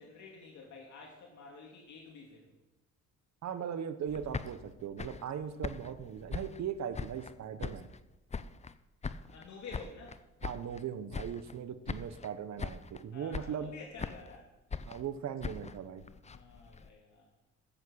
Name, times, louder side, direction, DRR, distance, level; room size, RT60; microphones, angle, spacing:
voice 1, 0.0-2.5 9.3-10.2 13.1-14.5 16.3-17.3, left 4 dB, 70° left, -1 dB, 2.5 m, -50 dB
voice 2, 3.4-7.9 10.4-13.7 14.8-16.0, right 8 dB, 65° right, 11 dB, 1.1 m, -39 dB
sound 1, 4.1-7.3 7.6-8.7 9.0-10.8 11.1-11.6 11.9-12.3 12.6-13.0 13.3-14.4 14.7-16.9, left 5 dB, 25° left, 0.6 m, -41 dB
14.0 x 7.4 x 6.4 m, 1.0 s
cardioid pair, 90°, 30 cm